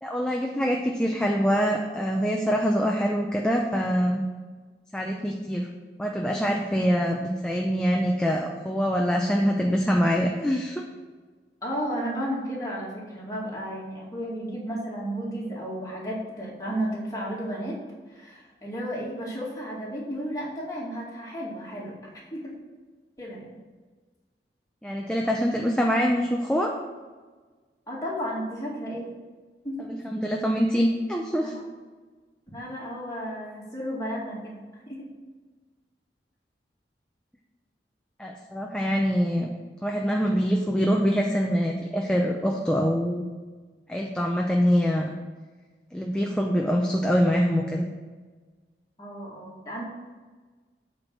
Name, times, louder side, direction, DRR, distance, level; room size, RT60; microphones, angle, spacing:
voice 1, 0.0-4.2 4.9-5.7 6.0-10.8 24.8-26.7 29.8-31.5 38.2-39.5 39.8-43.3 43.9-45.1 45.9-47.9, equal, 5° left, 0 dB, 0.6 m, -24 dB
voice 2, 11.6-17.8 18.1-21.9 22.3-22.5 23.2-23.5 27.9-29.1 29.6-29.9 31.4-31.6 32.5-34.5 34.9-35.0 49.0-49.8, equal, 20° left, -5 dB, 2.3 m, -33 dB
8.4 x 4.5 x 7.2 m, 1.4 s
head